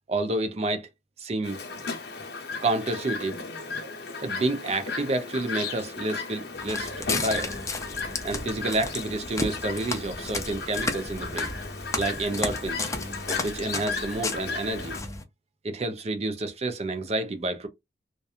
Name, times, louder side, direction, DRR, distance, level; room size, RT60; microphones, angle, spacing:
voice 1, 0.1-0.9 1.2-1.6 2.6-3.4 4.2-6.9 7.2-7.6 8.2-11.5 11.9-12.9 13.4-15.0 15.6-17.7, right 2 dB, 35° right, 0.5 m, -29 dB
Chirp tweet, 1.4-15.0, left 4 dB, 65° left, 0.8 m, -35 dB
Walk footsteps, 6.6-15.2, left 3 dB, 20° left, 0.4 m, -33 dB
2.8 x 2.2 x 2.4 m
head